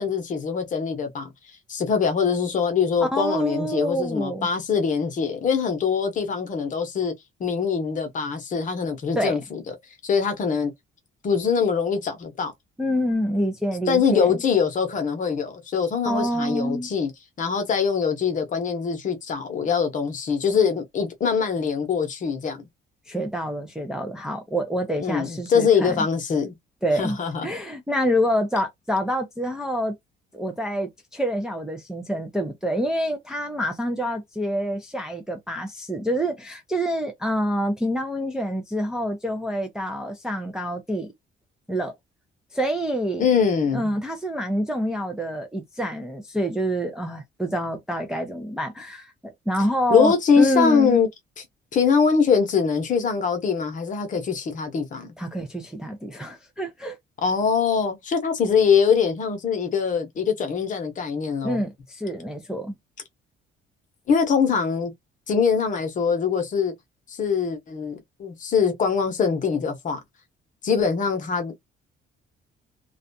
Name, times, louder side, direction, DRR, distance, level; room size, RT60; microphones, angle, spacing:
voice 1, 0.0-1.3 1.7-7.1 7.4-9.7 10.0-10.7 11.2-12.5 13.9-17.1 17.4-22.7 25.0-26.5 27.0-27.5 43.2-43.9 49.9-51.1 51.7-55.1 57.2-61.6 64.1-64.9 65.3-66.7 67.1-70.0 70.6-71.5, left 6 dB, 40° left, 0.8 m, -23 dB
voice 2, 3.0-4.5 9.2-9.4 12.8-14.3 16.0-16.9 23.1-26.0 26.8-27.2 27.4-30.0 30.3-41.1 41.7-41.9 42.5-43.3 43.7-51.0 55.2-57.0 61.4-62.7, equal, 5° right, 0.4 m, -27 dB
2.4 x 2.2 x 2.6 m
cardioid pair, 160°, 20 cm